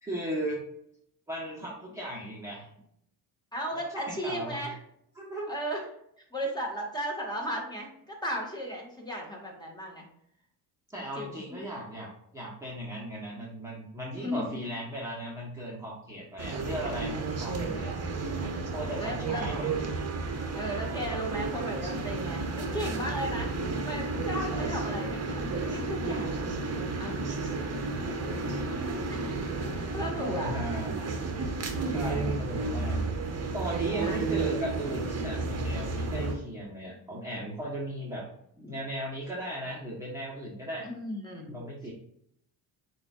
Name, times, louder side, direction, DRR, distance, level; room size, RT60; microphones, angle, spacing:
voice 1, 0.0-0.6 1.3-2.7 3.9-4.6 5.2-5.5 10.9-17.9 18.7-19.7 28.1-28.4 30.2-31.2 31.8-33.0 33.5-38.3 38.7-40.9 41.5-41.9, right 1 dB, 5° right, -7 dB, 1.1 m, -37 dB
voice 2, 3.5-4.8 5.5-5.8 6.3-10.0 11.1-11.4 14.1-14.4 18.9-19.6 20.5-23.5 23.8-27.5 29.1-29.4 29.7-30.5 31.7-32.3 34.0-34.2 38.6-38.8 40.8-41.6, equal, 10° left, -1 dB, 1.6 m, -36 dB
sound 1, 16.4-36.3, right 3 dB, 35° right, 0.9 m, -32 dB
8.0 x 2.7 x 2.4 m, 0.71 s
cardioid pair, 85°, 44 cm